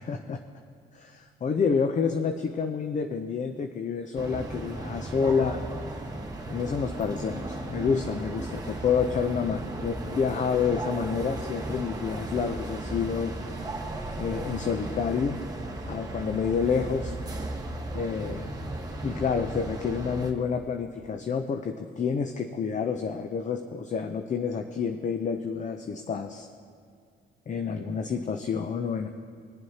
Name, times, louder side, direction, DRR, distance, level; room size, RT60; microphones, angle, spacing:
voice 1, 0.9-5.6 6.5-13.3 14.2-15.4 15.9-17.2 17.9-18.5 19.0-26.5 27.5-29.1, left 6 dB, 40° left, 6 dB, 0.6 m, -28 dB
sound 1, 4.1-20.3, right 2 dB, 20° right, 1.3 m, -36 dB
22.5 x 7.6 x 2.9 m, 2.2 s
cardioid pair, 90°, 20 cm